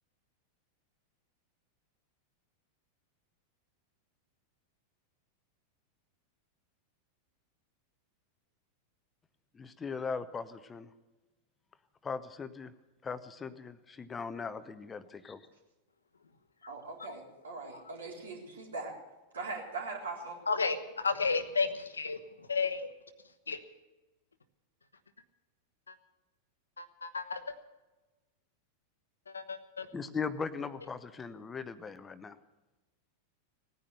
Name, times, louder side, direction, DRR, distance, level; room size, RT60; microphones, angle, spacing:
voice 1, 9.6-10.9 12.0-12.7 13.0-15.4 29.9-32.4, left 5 dB, 15° left, 13 dB, 0.8 m, -39 dB
voice 2, 16.7-19.0 19.3-20.4, right 3 dB, 70° right, 1 dB, 3.9 m, -41 dB
voice 3, 20.5-22.2 22.5-22.9 23.5-23.6 26.8-27.4 29.3-29.9, left 4 dB, 75° left, 11 dB, 1.2 m, -32 dB
18.0 x 10.0 x 7.8 m, 1.1 s
figure-of-eight pair, 90°, 0 cm